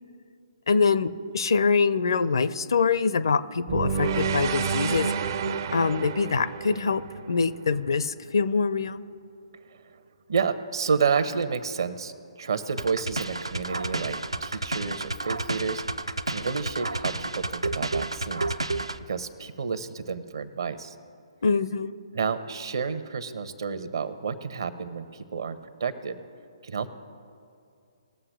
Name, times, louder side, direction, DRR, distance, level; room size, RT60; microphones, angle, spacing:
voice 1, 0.7-5.1 5.7-9.0 21.4-21.9, left 5 dB, 60° left, 14 dB, 0.5 m, -24 dB
sound 1, 3.7-7.9, right 5 dB, 40° right, 0.5 m, -29 dB
voice 2, 10.3-12.1 12.4-18.5 19.1-20.9 22.1-26.1 26.6-26.9, right 5 dB, 60° right, 11 dB, 0.9 m, -30 dB
sound 2, 12.8-19.0, right 2 dB, 80° right, 0.6 m, -31 dB
20.0 x 7.2 x 3.5 m, 2.5 s
figure-of-eight pair, 130°, 3 cm